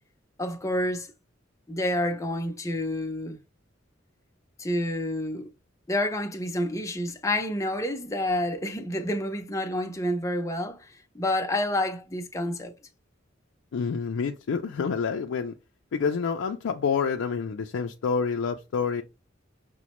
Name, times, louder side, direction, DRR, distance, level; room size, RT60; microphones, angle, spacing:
voice 1, 0.4-1.1 1.7-3.4 4.6-5.5 5.9-12.7, left 1 dB, 15° left, 0.6 m, -29 dB
voice 2, 13.7-15.5 15.9-19.0, left 5 dB, 90° left, 0.4 m, -28 dB
5.9 x 2.1 x 2.9 m
head